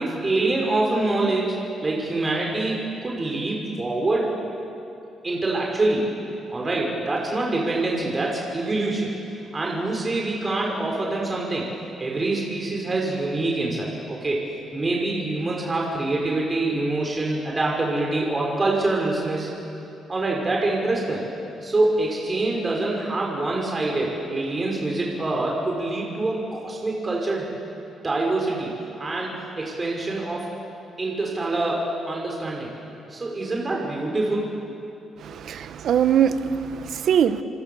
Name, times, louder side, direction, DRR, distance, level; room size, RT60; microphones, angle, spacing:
voice 1, 0.0-4.3 5.2-6.2 6.5-9.1 9.5-11.7 12.0-14.4 14.7-19.5 20.1-21.2 21.6-27.5 28.0-28.7 29.0-30.5 31.0-32.7 33.1-34.5, right 2 dB, 25° right, -1 dB, 5.5 m, -25 dB
voice 2, 35.2-37.4, right 8 dB, 65° right, 11 dB, 1.3 m, -22 dB
29.0 x 27.0 x 7.1 m, 2.7 s
cardioid pair, 90°, 0 cm